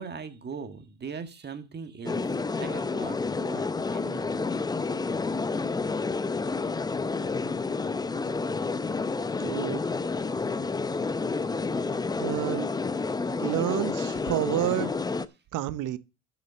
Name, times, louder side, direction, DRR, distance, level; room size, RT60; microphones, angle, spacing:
voice 1, 0.0-4.6, right 5 dB, 25° right, 1.7 m, -40 dB
sound 1, 2.0-15.3, left 4 dB, 10° left, 0.5 m, -30 dB
voice 2, 9.4-9.8 12.2-12.7 13.3-14.9 15.5-16.0, right 14 dB, 55° right, 1.0 m, -29 dB
7.9 x 6.8 x 6.7 m
supercardioid pair, 85°, 37 cm